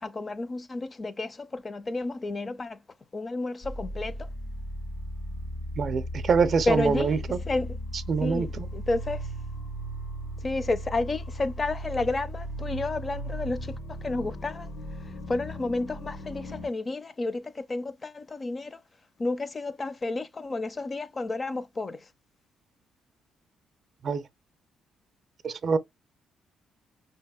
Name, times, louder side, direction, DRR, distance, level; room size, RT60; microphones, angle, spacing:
voice 1, 0.0-2.8 3.1-4.3 6.7-7.8 8.2-9.3 10.4-14.7 15.0-18.8 19.2-22.1, left 2 dB, 30° left, 0.5 m, -31 dB
sound 1, 3.6-16.7, equal, 80° left, 1.2 m, -37 dB
voice 2, 5.8-7.4 8.1-8.7 24.0-24.2 25.4-25.8, right 5 dB, 50° right, 0.5 m, -25 dB
5.3 x 2.8 x 2.3 m
cardioid pair, 90°, 0 cm